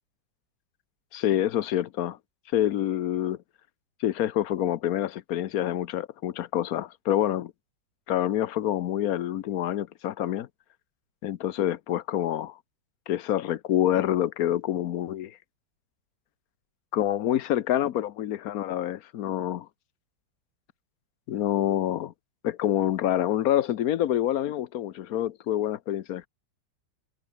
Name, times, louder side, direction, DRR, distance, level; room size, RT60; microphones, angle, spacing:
voice 1, 1.1-2.2 2.5-3.4 4.0-7.5 8.1-10.5 11.2-12.6 13.1-15.4 16.9-19.7 21.3-22.1 22.4-26.3, left 12 dB, 65° left, 1.1 m, -27 dB
omnidirectional pair, 2.0 m